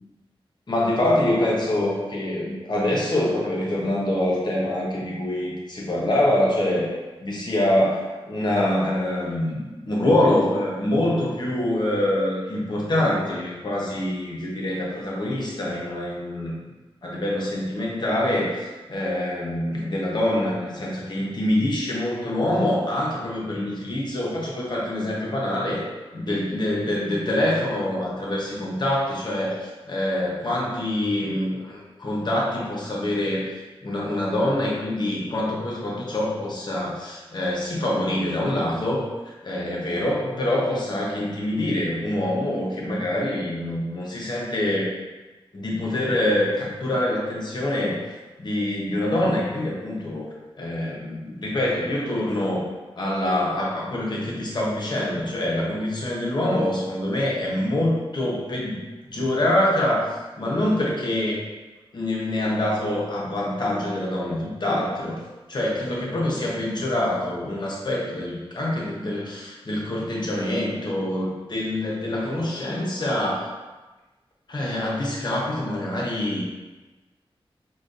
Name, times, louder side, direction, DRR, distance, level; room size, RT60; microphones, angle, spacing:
voice 1, 0.7-6.9 7.2-16.5 17.0-18.6 18.9-25.8 26.1-44.9 45.5-48.0 48.4-50.3 50.6-52.6 53.0-58.8 59.1-60.1 60.4-61.4 61.9-65.2 65.5-73.5 74.5-76.4, left 1 dB, 50° left, -4 dB, 0.8 m, -25 dB
5.0 x 2.3 x 2.5 m, 1.2 s
wide cardioid pair, 110°, 10 cm